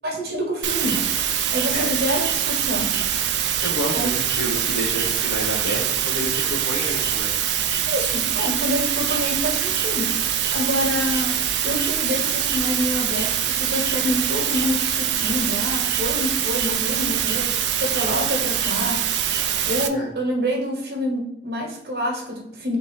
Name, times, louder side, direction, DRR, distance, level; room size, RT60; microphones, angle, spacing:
voice 1, 0.0-1.1 1.5-3.0 3.9-4.1 7.9-17.5 17.8-19.1 19.6-22.8, equal, 70° right, -1 dB, 1.2 m, -27 dB
sound 1, 0.6-19.9, right 9 dB, 90° right, 0.4 m, -24 dB
voice 2, 3.6-7.3 19.9-20.1, equal, 70° left, -5 dB, 0.9 m, -29 dB
3.6 x 2.7 x 4.7 m, 0.81 s
head